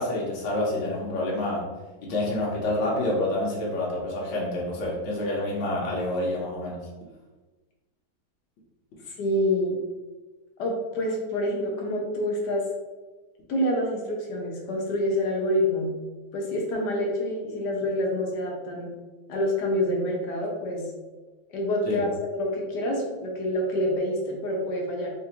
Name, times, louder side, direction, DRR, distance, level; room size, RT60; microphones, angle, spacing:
voice 1, 0.0-1.7 2.0-6.8 21.9-22.0, left 1 dB, 85° left, -4 dB, 1.6 m, -28 dB
voice 2, 9.1-9.8 10.6-12.6 13.5-15.9 16.3-18.9 19.3-20.9 21.5-25.1, left 1 dB, 65° left, 0 dB, 1.2 m, -27 dB
4.5 x 2.5 x 2.9 m, 1.2 s
omnidirectional pair, 2.2 m